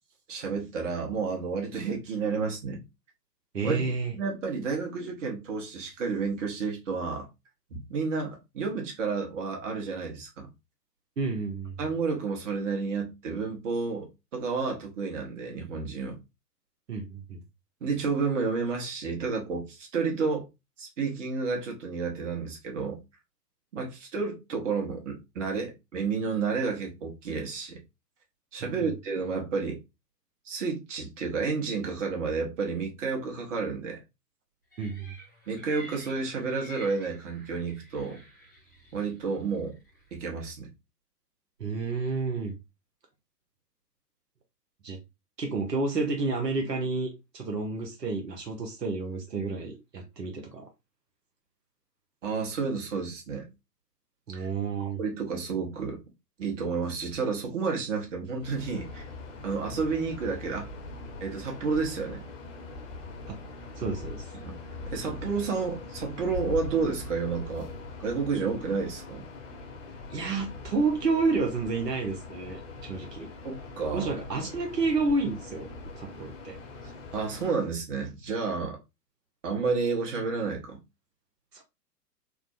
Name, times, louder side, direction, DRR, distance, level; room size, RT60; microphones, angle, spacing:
voice 1, 0.3-2.8 3.6-7.3 7.7-10.5 11.8-16.2 17.8-20.4 20.8-23.0 23.7-27.8 28.5-29.8 30.4-34.0 35.5-38.2 38.9-39.8 40.1-40.7 52.2-53.5 54.3-54.5 54.8-56.0 56.4-59.0 59.4-60.7 61.2-62.2 64.3-64.6 64.9-67.7 68.0-69.2 73.4-74.1 76.8-78.8 79.4-80.8, right 4 dB, 50° right, 1.1 m, -31 dB
voice 2, 3.5-4.1 11.2-11.7 16.9-17.4 34.8-35.1 41.6-42.5 44.8-45.0 45.4-50.7 54.3-55.0 63.3-63.4 63.8-64.3 70.1-73.3 73.9-75.7 75.9-76.6 81.5-81.6, right 3 dB, 85° right, 0.7 m, -30 dB
sound 1, 34.7-40.1, equal, 15° left, 0.3 m, -50 dB
sound 2, 58.4-77.5, left 3 dB, 50° left, 0.9 m, -42 dB
3.4 x 2.0 x 2.4 m
figure-of-eight pair, 110°, 48 cm